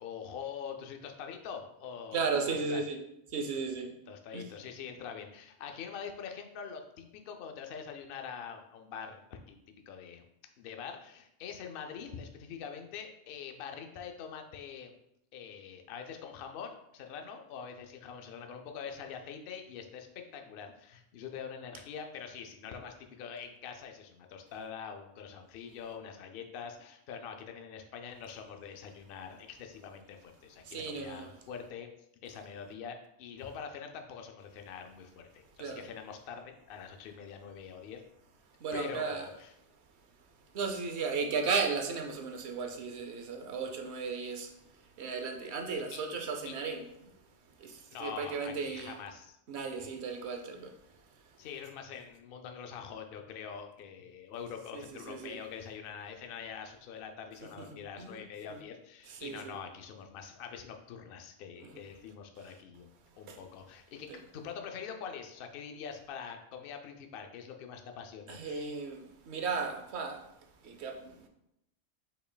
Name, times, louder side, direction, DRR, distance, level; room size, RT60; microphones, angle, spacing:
voice 1, 0.0-2.8 4.1-9.6 9.9-10.2 10.6-14.9 15.3-31.9 32.2-38.0 38.7-39.5 45.9-46.0 46.4-46.5 47.9-49.4 51.4-62.9 63.2-68.7, left 7 dB, 65° left, 0.7 m, -44 dB
voice 2, 2.1-3.0 3.3-3.9 4.3-4.5 30.6-31.3 35.6-35.8 38.6-39.3 40.5-44.5 45.0-47.1 47.6-49.0 49.5-50.7 54.7-55.4 57.7-58.2 59.1-59.5 61.6-61.7 63.3-63.4 64.1-64.2 68.3-70.2 70.6-71.3, right 5 dB, 75° right, 1.0 m, -35 dB
5.4 x 4.4 x 2.2 m
omnidirectional pair, 1.1 m